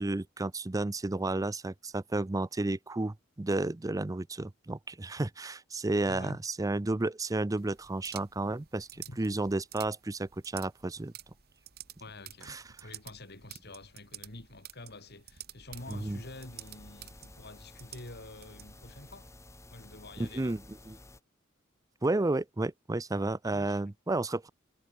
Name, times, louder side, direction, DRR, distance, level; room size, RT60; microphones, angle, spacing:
voice 1, 0.0-8.9 9.2-11.1 12.5-12.6 15.9-16.2 20.2-20.6 20.9-21.0 22.0-24.5, right 2 dB, 15° right, 0.5 m, -32 dB
voice 2, 6.1-6.4 8.9-9.3 12.0-19.3 19.7-20.6 20.9-21.0 23.4-23.8, left 2 dB, 55° left, 4.3 m, -48 dB
sound 1, 7.6-19.3, right 11 dB, 55° right, 2.6 m, -51 dB
sound 2, 15.8-21.2, left 1 dB, 15° left, 2.2 m, -53 dB
head